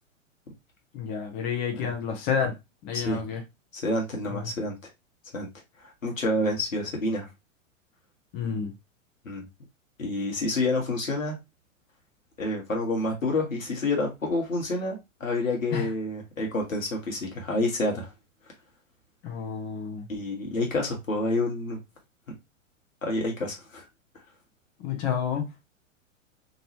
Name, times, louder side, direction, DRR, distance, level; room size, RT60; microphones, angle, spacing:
voice 1, 0.9-2.6 2.8-3.4 4.3-4.5 8.3-8.7 15.7-15.9 19.2-20.1 24.8-25.5, left 7 dB, 30° left, 0.8 m, -30 dB
voice 2, 3.7-4.7 5.3-5.5 5.8-7.3 9.2-9.4 10.0-11.4 12.4-18.1 20.1-21.8 23.0-23.8, left 2 dB, 80° left, 1.4 m, -28 dB
3.0 x 2.6 x 2.9 m
figure-of-eight pair, 100°, 39 cm